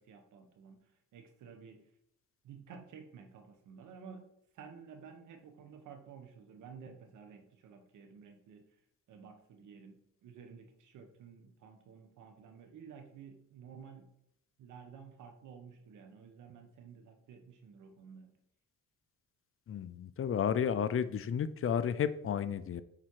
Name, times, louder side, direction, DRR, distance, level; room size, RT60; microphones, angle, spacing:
voice 1, 0.0-1.8 2.4-4.3 4.5-8.7 9.1-14.1 14.6-18.4, right 6 dB, 80° right, 6 dB, 1.4 m, -53 dB
voice 2, 19.7-22.8, left 8 dB, 45° left, 14 dB, 0.6 m, -32 dB
8.9 x 4.4 x 4.7 m, 0.73 s
cardioid pair, 90°, 30 cm